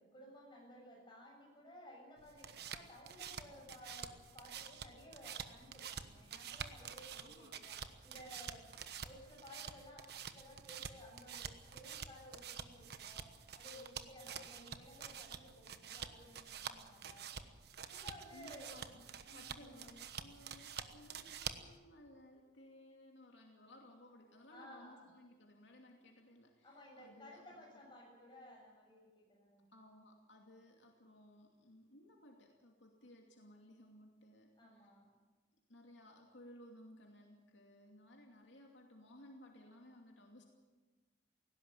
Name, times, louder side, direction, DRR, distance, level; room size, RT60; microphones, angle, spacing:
voice 1, 0.0-7.8 8.0-17.5 17.9-19.9 24.5-25.1 26.6-29.7 34.6-35.2, left 1 dB, 25° left, -1 dB, 7.1 m, -57 dB
sound 1, 2.2-21.8, right 7 dB, 60° right, 1.2 m, -48 dB
voice 2, 7.2-7.7 14.6-14.9 18.3-19.0 19.3-27.6 29.7-34.9 35.7-40.4, left 1 dB, 75° left, 1 dB, 2.6 m, -59 dB
18.5 x 17.0 x 9.1 m, 1.3 s
head